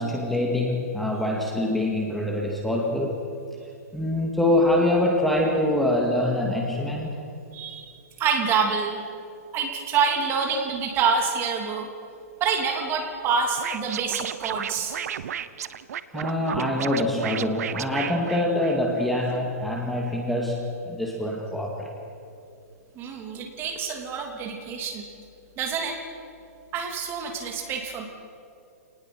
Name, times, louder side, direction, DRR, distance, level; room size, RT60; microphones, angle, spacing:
voice 1, 0.0-3.2 3.9-7.1 16.1-21.9, left 1 dB, ahead, -1 dB, 2.2 m, -25 dB
voice 2, 7.5-7.9 8.2-9.0 9.5-11.9 12.4-15.0 22.9-25.1 25.6-26.0 26.7-28.0, right 5 dB, 25° right, 4 dB, 2.9 m, -27 dB
Scratching (performance technique), 13.6-19.1, right 9 dB, 70° right, 0.9 m, -33 dB
28.0 x 19.5 x 6.2 m, 2.6 s
hypercardioid pair, 145°, 9 cm